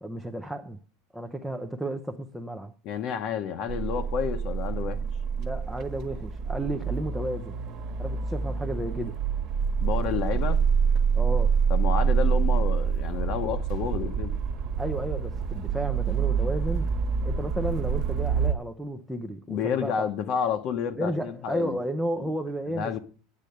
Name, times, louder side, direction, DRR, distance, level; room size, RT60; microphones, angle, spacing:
voice 1, 0.0-0.8 1.1-2.7 5.4-7.6 8.0-9.2 11.2-11.6 14.8-16.9 17.2-19.9 21.0-23.0, right 1 dB, ahead, 0.6 m, -33 dB
voice 2, 2.8-5.1 9.8-10.6 11.7-14.3 19.5-21.8 22.2-22.3 22.7-23.0, left 8 dB, 40° left, 1.0 m, -30 dB
sound 1, 3.7-18.5, right 6 dB, 40° right, 1.5 m, -26 dB
9.7 x 8.5 x 7.8 m
supercardioid pair, 170°, 0 cm